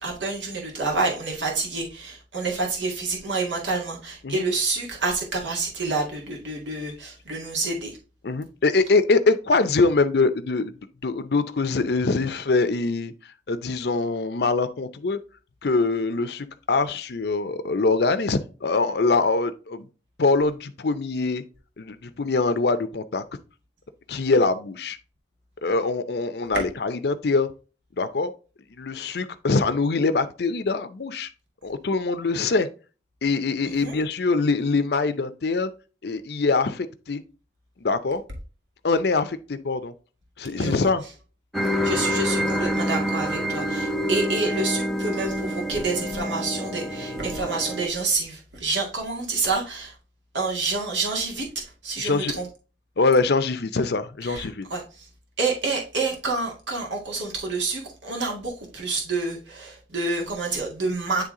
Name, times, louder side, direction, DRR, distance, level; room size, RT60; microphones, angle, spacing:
voice 1, 0.0-8.0 33.6-34.0 40.5-40.9 41.6-50.0 50.3-52.5 54.2-55.1 55.4-61.2, right 3 dB, 90° right, 1.9 m, -28 dB
voice 2, 8.2-10.7 11.0-13.1 13.5-15.2 15.6-19.9 20.2-21.4 21.8-23.2 24.1-25.0 25.6-27.5 28.0-28.3 28.8-31.3 31.6-32.7 33.2-35.7 36.0-37.2 37.8-38.2 38.8-39.9 40.4-41.0 52.0-52.4 53.0-54.7, left 3 dB, 60° left, 0.6 m, -23 dB
sound 1, 41.5-47.9, equal, ahead, 0.7 m, -27 dB
9.7 x 3.4 x 3.7 m
head